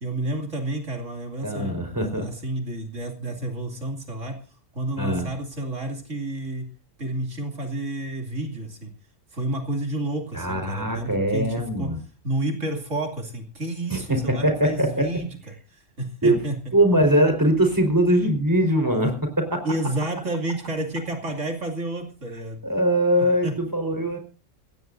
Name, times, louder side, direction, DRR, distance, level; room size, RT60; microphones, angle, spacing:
voice 1, 0.0-4.4 4.7-6.7 7.0-8.9 9.3-11.9 12.2-16.6 19.6-22.6 23.4-23.5, right 1 dB, 80° right, 3 dB, 3.0 m, -30 dB
voice 2, 1.4-2.3 5.0-5.3 10.3-12.0 13.9-15.1 16.2-16.4 16.7-19.6 22.6-24.2, right 1 dB, 15° right, 5 dB, 4.4 m, -22 dB
23.5 x 17.0 x 2.6 m, 0.36 s
omnidirectional pair, 1.3 m